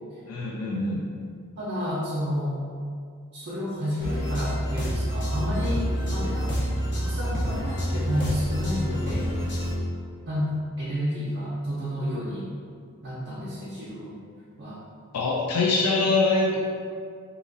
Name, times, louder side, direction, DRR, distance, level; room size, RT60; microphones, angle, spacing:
voice 1, 0.3-1.1 15.1-16.6, left 3 dB, 85° left, -3 dB, 0.4 m, -24 dB
voice 2, 1.6-2.6 3.3-6.5 6.9-9.3 10.2-10.5 10.8-12.5 13.0-14.2 14.6-14.8, equal, 50° right, -9 dB, 0.6 m, -30 dB
sound 1, 4.0-9.8, equal, 50° left, 0.8 m, -28 dB
2.9 x 2.4 x 3.7 m, 2.2 s
head